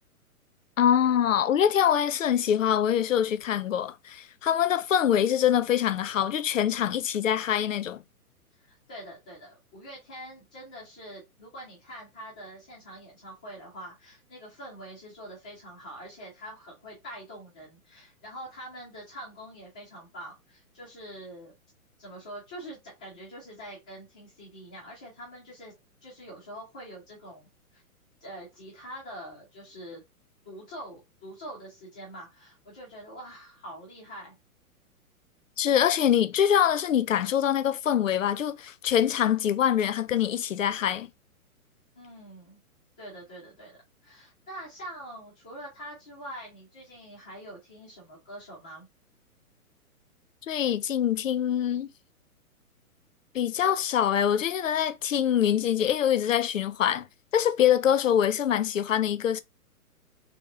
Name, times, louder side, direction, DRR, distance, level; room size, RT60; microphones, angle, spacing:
voice 1, 0.8-8.0 35.6-41.1 50.5-51.9 53.3-57.1 57.3-59.4, left 9 dB, 60° left, 0.6 m, -24 dB
voice 2, 8.6-21.5 22.0-25.7 26.0-27.8 28.2-30.0 30.4-34.3 42.0-42.6 43.0-48.9, equal, 5° left, 0.4 m, -44 dB
3.3 x 2.8 x 4.1 m
figure-of-eight pair, 120°, 44 cm